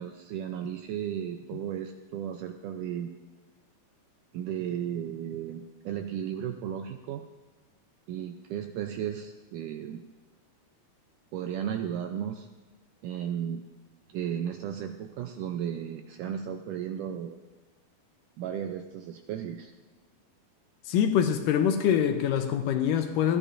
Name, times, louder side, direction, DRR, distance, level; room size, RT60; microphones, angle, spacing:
voice 1, 0.0-3.1 4.3-7.2 8.1-10.0 11.3-12.5 13.0-13.6 14.1-17.4 18.4-19.7, right 9 dB, 85° right, 6 dB, 1.9 m, -34 dB
voice 2, 20.9-23.4, left 8 dB, 80° left, 7 dB, 2.1 m, -24 dB
27.0 x 10.0 x 2.5 m, 1.2 s
omnidirectional pair, 4.2 m